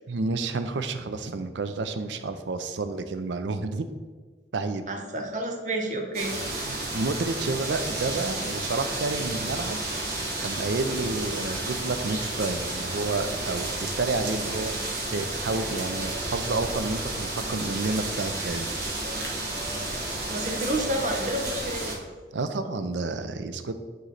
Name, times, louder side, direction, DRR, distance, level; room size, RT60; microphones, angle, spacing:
voice 1, 0.1-3.9 4.5-4.8 6.7-10.1 10.4-18.7 22.3-23.7, right 3 dB, 85° right, 9 dB, 0.5 m, -30 dB
voice 2, 4.9-6.4 20.3-22.0, right 1 dB, 45° right, 2 dB, 0.9 m, -30 dB
sound 1, 6.1-22.0, right 2 dB, 60° right, 1.2 m, -32 dB
9.1 x 3.1 x 4.0 m, 1.5 s
head